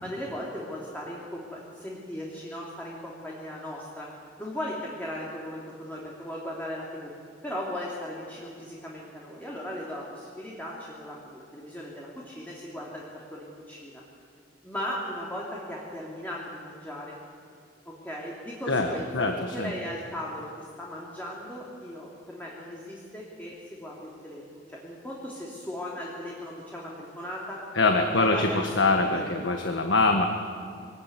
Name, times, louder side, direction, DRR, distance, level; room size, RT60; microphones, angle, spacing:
voice 1, 0.0-4.1 4.4-7.1 7.4-13.0 13.3-14.0 14.6-17.1 17.8-27.6 27.9-29.3, left 1 dB, 10° left, -5 dB, 3.1 m, -37 dB
voice 2, 19.1-19.7 27.7-30.3, left 3 dB, 70° left, 4 dB, 1.5 m, -24 dB
23.0 x 17.5 x 9.8 m, 2.4 s
head